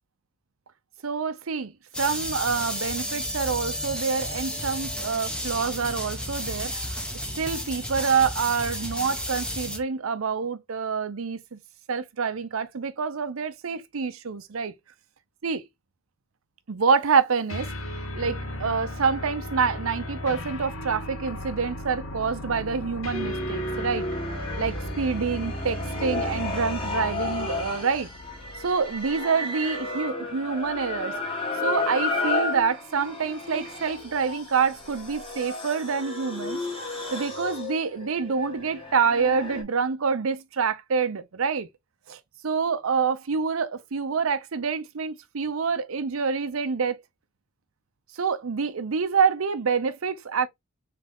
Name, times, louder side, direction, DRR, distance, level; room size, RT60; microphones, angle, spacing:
voice 1, 1.0-1.7 2.0-7.0 7.4-11.6 11.9-14.7 15.4-15.6 16.7-24.1 24.6-28.1 28.6-31.1 31.6-41.7 42.1-47.0 48.1-50.5, right 5 dB, 90° right, 0.6 m, -27 dB
sound 1, 1.9-9.8, equal, 5° left, 0.8 m, -32 dB
sound 2, 17.5-27.8, left 1 dB, 85° left, 1.2 m, -35 dB
sound 3, 23.1-39.6, left 2 dB, 25° left, 1.5 m, -32 dB
3.9 x 3.3 x 3.4 m
head